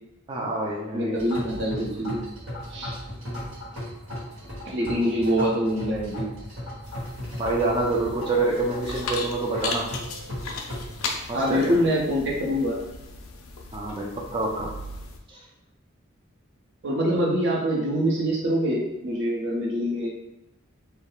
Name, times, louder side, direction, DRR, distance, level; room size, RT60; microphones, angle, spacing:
voice 1, 0.3-1.2 3.3-3.5 7.4-9.9 11.3-11.8 13.7-14.7 15.3-15.4, right 2 dB, 25° right, -1 dB, 0.3 m, -27 dB
voice 2, 0.9-2.2 2.7-2.9 4.7-6.2 11.3-12.8 16.8-20.1, equal, 60° right, -2 dB, 0.7 m, -25 dB
sound 1, 1.1-11.2, equal, 85° right, 1.1 m, -37 dB
sound 2, 6.8-15.2, left 3 dB, 80° left, 0.4 m, -37 dB
2.3 x 2.1 x 3.0 m, 0.91 s
head